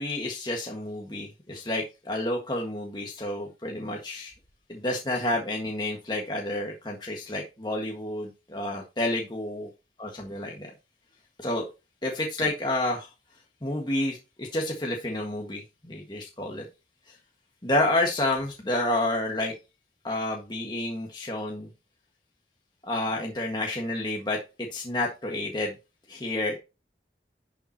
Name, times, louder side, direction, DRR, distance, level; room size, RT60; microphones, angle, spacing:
voice 1, 0.0-4.3 4.7-9.7 10.0-10.7 11.4-11.6 12.0-13.1 13.6-16.7 17.6-19.5 20.0-21.7 22.9-25.7 26.1-26.6, left 1 dB, 25° left, 0 dB, 1.6 m, -29 dB
11.0 x 6.9 x 2.9 m, 0.28 s
head